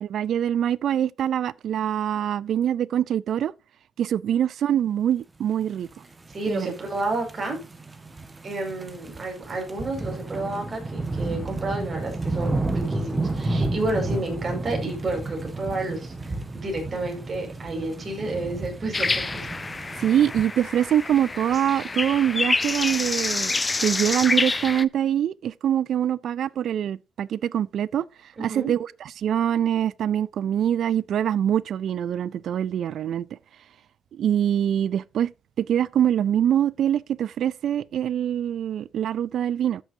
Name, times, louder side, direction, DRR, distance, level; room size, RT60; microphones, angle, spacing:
voice 1, 0.0-3.5 4.0-5.9 6.5-6.7 20.0-28.0 28.4-28.9 29.2-33.3 34.1-35.3 35.6-39.8, right 10 dB, 65° right, 0.3 m, -24 dB
sound 1, 6.1-20.4, right 2 dB, 20° right, 1.5 m, -31 dB
voice 2, 6.3-7.6 8.4-19.5 28.4-28.7, right 2 dB, 40° right, 5.3 m, -31 dB
sound 2, 18.9-24.8, left 3 dB, 25° left, 0.5 m, -27 dB
13.5 x 6.1 x 2.7 m
cardioid pair, 90°, 0 cm